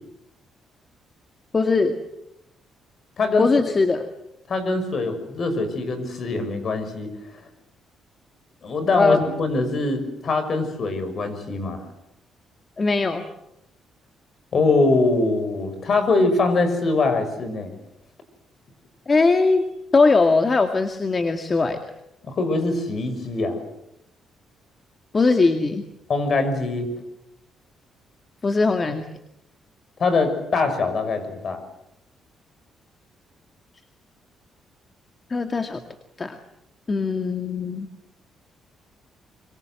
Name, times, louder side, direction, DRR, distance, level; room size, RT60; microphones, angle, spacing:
voice 1, 1.5-1.9 3.4-4.0 8.9-9.2 12.8-13.2 19.1-19.6 19.9-21.8 25.1-25.8 28.4-29.0 35.3-35.8 36.2-36.4 36.9-37.9, left 3 dB, 30° left, 7 dB, 2.1 m, -20 dB
voice 2, 3.2-3.5 4.5-7.1 8.6-11.8 14.5-17.7 22.2-23.6 26.1-26.9 30.0-31.6, left 3 dB, 50° left, 9 dB, 6.2 m, -23 dB
26.0 x 24.0 x 7.9 m, 0.84 s
cardioid pair, 90°, 0 cm